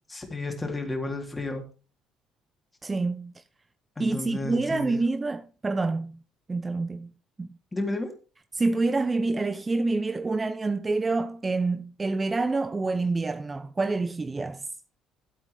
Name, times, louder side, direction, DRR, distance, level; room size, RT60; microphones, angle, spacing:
voice 1, 0.1-1.6 4.0-5.0 7.7-8.1, left 2 dB, 20° left, 3.3 m, -32 dB
voice 2, 2.8-3.4 4.0-6.2 6.5-7.1 7.4-7.5 8.5-14.7, right 3 dB, 25° right, 0.6 m, -27 dB
13.0 x 8.1 x 3.4 m
figure-of-eight pair, 50°, 0 cm